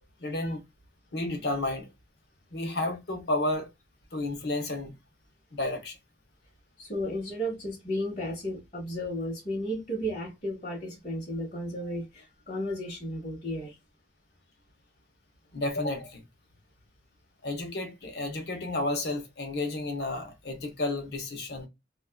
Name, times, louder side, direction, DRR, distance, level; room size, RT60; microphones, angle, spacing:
voice 1, 0.2-0.6 1.1-1.9 2.5-3.7 4.1-4.9 5.5-6.0 15.5-16.2 17.4-21.7, left 2 dB, 65° left, 0.7 m, -31 dB
voice 2, 6.8-13.7, equal, 40° left, 1.1 m, -34 dB
2.5 x 2.3 x 2.2 m
head